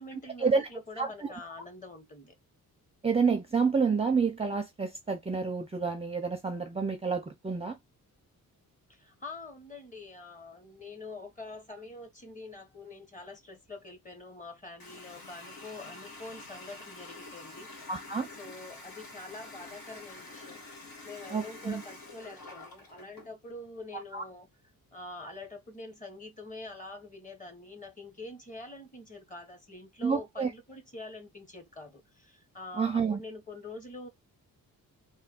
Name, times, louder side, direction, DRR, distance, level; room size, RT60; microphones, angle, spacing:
voice 1, 0.0-2.3 8.9-17.9 18.4-20.6 21.0-24.5 24.9-34.1, left 2 dB, 20° left, 1.2 m, -45 dB
voice 2, 1.0-1.3 3.0-7.8 17.9-18.3 21.3-21.8 24.1-24.2 30.0-30.5 32.8-33.2, right 5 dB, 15° right, 0.5 m, -29 dB
Water tap faucet, 14.8-23.3, left 2 dB, 75° left, 1.5 m, -47 dB
3.3 x 2.3 x 4.3 m
cardioid pair, 125°, 35 cm